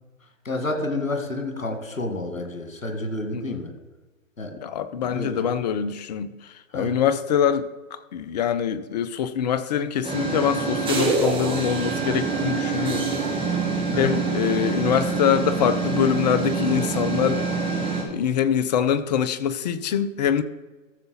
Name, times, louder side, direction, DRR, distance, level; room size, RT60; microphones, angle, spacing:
voice 1, 0.5-3.7 4.4-4.6 5.0-5.5 6.7-6.9 13.9-14.1, left 2 dB, 85° left, 1.9 m, -29 dB
voice 2, 4.6-13.2 14.0-17.5 18.0-20.4, left 8 dB, 35° left, 0.5 m, -24 dB
sound 1, 10.0-18.0, right 4 dB, 15° right, 1.9 m, -25 dB
14.0 x 6.7 x 4.1 m
figure-of-eight pair, 115°, 39 cm